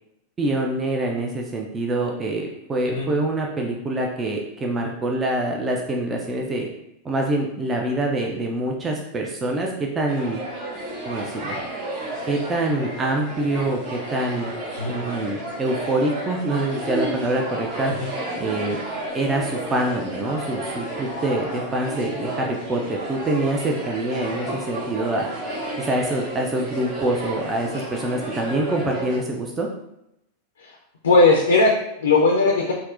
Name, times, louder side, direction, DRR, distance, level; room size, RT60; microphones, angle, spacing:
voice 1, 0.4-6.7 7.0-10.4 11.1-11.6 12.2-14.5 14.9-17.9 18.4-18.8 19.1-25.3 25.8-29.7, right 2 dB, 20° right, 0 dB, 0.3 m, -25 dB
sound 1, 10.1-29.2, right 1 dB, 40° right, 0.8 m, -32 dB
voice 2, 31.0-32.7, left 3 dB, 70° left, 0 dB, 0.4 m, -18 dB
4.2 x 2.0 x 2.4 m, 0.83 s
figure-of-eight pair, 90°, 0 cm